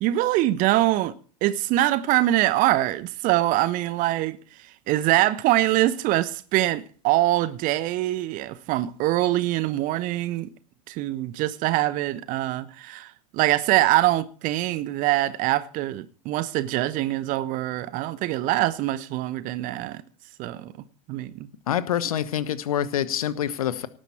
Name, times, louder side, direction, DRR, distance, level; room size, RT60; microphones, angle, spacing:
voice 1, 0.0-1.1 1.4-4.4 4.9-10.5 10.9-20.0 20.4-20.7 21.1-21.5, right 15 dB, 45° right, 1.1 m, -24 dB
voice 2, 21.7-23.9, left 10 dB, 70° left, 1.2 m, -26 dB
18.0 x 9.8 x 4.5 m
figure-of-eight pair, 80°, 20 cm